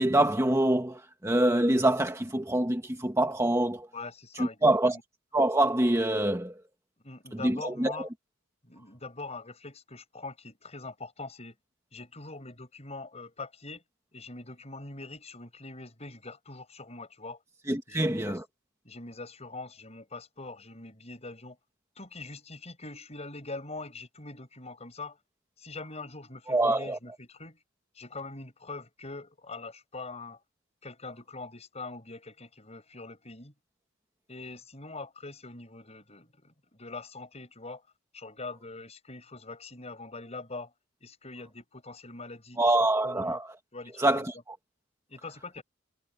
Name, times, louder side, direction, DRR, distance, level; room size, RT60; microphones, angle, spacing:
voice 1, 0.0-3.9 4.4-5.0 5.3-6.6 7.4-8.1 17.7-18.4 26.5-27.0 42.6-43.4 44.0-44.3, right 1 dB, 15° right, 1.5 m, -25 dB
voice 2, 3.9-5.0 7.0-8.1 8.6-11.6 11.9-13.8 14.1-17.4 17.9-18.4 18.8-21.6 22.0-25.2 25.6-27.6 27.9-30.4 30.8-33.5 34.3-36.5 36.8-37.8 38.1-40.7 41.0-43.4 43.7-44.2 45.1-45.6, left 3 dB, 30° left, 6.6 m, -43 dB
head